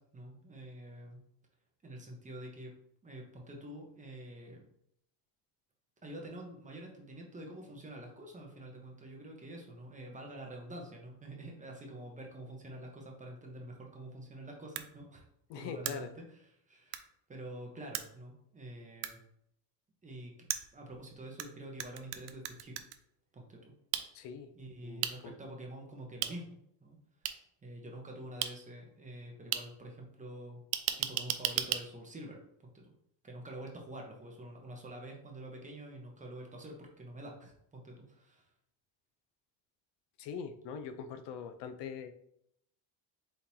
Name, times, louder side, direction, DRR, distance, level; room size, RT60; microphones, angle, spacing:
voice 1, 0.1-1.2 1.8-2.7 3.0-4.6 6.0-15.3 15.5-16.1 16.7-19.2 20.0-20.5 20.7-22.7 23.3-23.7 24.5-27.0 27.3-30.6 31.0-32.4 33.2-38.5, right 1 dB, 15° right, 0 dB, 0.9 m, -47 dB
sound 1, 14.8-14.9 15.9-16.0 16.9-17.0 17.9-18.0 19.0-19.1 20.5-21.5 21.8-23.0 23.9-24.0 25.0-25.1 26.2-26.3 27.2-27.3 28.4-28.5 29.5-29.6 30.7-31.8, right 12 dB, 55° right, 0.5 m, -34 dB
voice 2, 15.5-16.1 24.1-24.5 24.8-25.4 40.2-42.1, left 6 dB, 70° left, 9 dB, 0.6 m, -42 dB
4.5 x 3.7 x 2.7 m, 0.73 s
cardioid pair, 135°, 45 cm